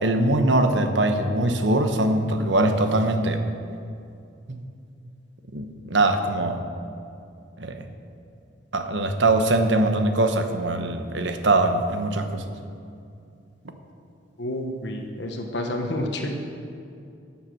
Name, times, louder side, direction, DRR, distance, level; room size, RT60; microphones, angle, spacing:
voice 1, 0.0-3.4 4.5-4.6 5.5-6.6 7.6-7.8 8.7-12.5, right 2 dB, 70° right, 7 dB, 1.0 m, -22 dB
voice 2, 14.4-16.3, left 1 dB, 65° left, 3 dB, 1.2 m, -29 dB
13.5 x 7.3 x 6.3 m, 2.5 s
head